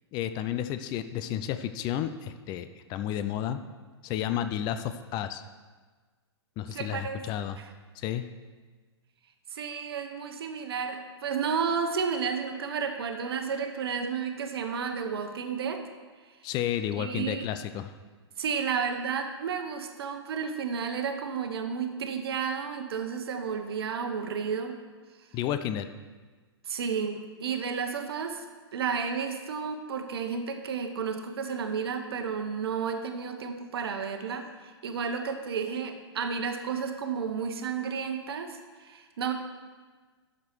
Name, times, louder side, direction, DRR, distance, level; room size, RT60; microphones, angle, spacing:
voice 1, 0.1-3.6 4.0-5.4 6.6-7.6 8.0-8.2 16.4-17.9 25.3-25.9, left 10 dB, 30° left, 10 dB, 0.5 m, -31 dB
voice 2, 6.7-7.2 7.6-7.7 9.5-15.8 17.0-17.5 18.4-24.8 26.7-28.4 28.7-39.3, right 6 dB, 60° right, 6 dB, 1.1 m, -32 dB
11.5 x 6.7 x 4.6 m, 1.4 s
figure-of-eight pair, 105°, 14 cm